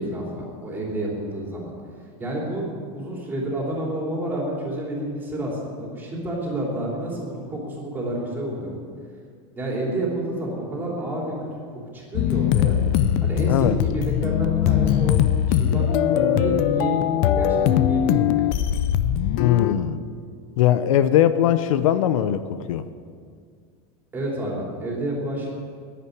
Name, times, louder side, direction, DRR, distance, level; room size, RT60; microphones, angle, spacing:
voice 1, 0.0-1.7 2.2-2.7 2.9-8.8 9.5-11.7 11.9-12.8 13.2-18.5 24.1-25.5, right 1 dB, 10° right, -3 dB, 3.2 m, -29 dB
sound 1, 12.1-19.7, left 10 dB, 40° left, 0.5 m, -21 dB
voice 2, 13.5-13.8 19.4-20.0 20.6-22.9, left 11 dB, 80° left, 12 dB, 0.7 m, -20 dB
10.5 x 10.5 x 9.5 m, 2.1 s
supercardioid pair, 170°, 17 cm